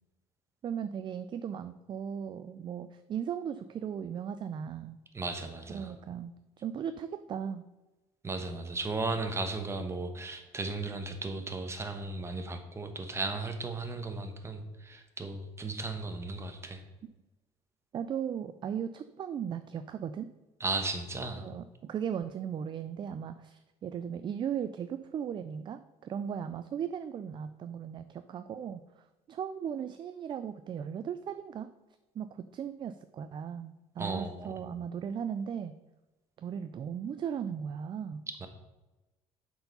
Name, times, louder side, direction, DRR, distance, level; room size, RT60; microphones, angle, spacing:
voice 1, 0.6-5.0 5.7-7.6 17.9-20.3 21.4-31.7 32.1-35.7 36.4-38.2, right 8 dB, 35° right, 11 dB, 0.4 m, -37 dB
voice 2, 5.1-5.9 8.2-16.8 20.6-21.4 34.0-34.7 38.4-38.5, right 3 dB, 20° right, 7 dB, 1.1 m, -35 dB
7.7 x 4.8 x 5.4 m, 1.1 s
cardioid pair, 110°, 13 cm